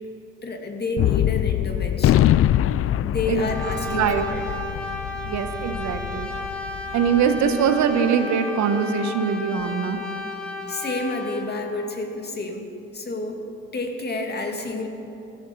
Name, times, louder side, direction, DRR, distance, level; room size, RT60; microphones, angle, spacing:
voice 1, 0.4-2.3 3.0-4.4 10.7-12.7 12.9-13.4 13.7-14.9, left 2 dB, 35° left, 2 dB, 2.4 m, -29 dB
Gunshot gunfire, 1.0-7.5, left 12 dB, 50° left, 0.4 m, -23 dB
Brass instrument, 3.4-11.5, left 1 dB, 5° left, 2.7 m, -33 dB
voice 2, 3.9-4.3 5.2-6.3 6.9-10.0, right 7 dB, 70° right, 8 dB, 1.2 m, -22 dB
15.0 x 13.5 x 5.5 m, 2.8 s
supercardioid pair, 75°, 29 cm